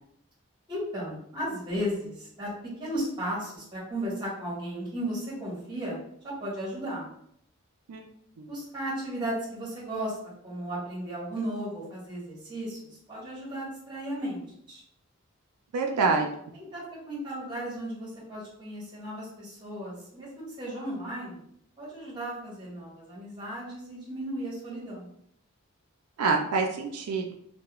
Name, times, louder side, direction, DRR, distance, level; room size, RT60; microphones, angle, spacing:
voice 1, 0.7-2.5 2.8-6.0 6.2-7.0 8.5-10.2 10.4-14.4 14.7-14.8 15.9-21.4 21.8-25.1, right 1 dB, 20° right, -6 dB, 0.9 m, -35 dB
voice 2, 15.7-16.3 26.2-27.3, right 4 dB, 90° right, 2 dB, 0.4 m, -26 dB
2.3 x 2.1 x 2.9 m, 0.71 s
head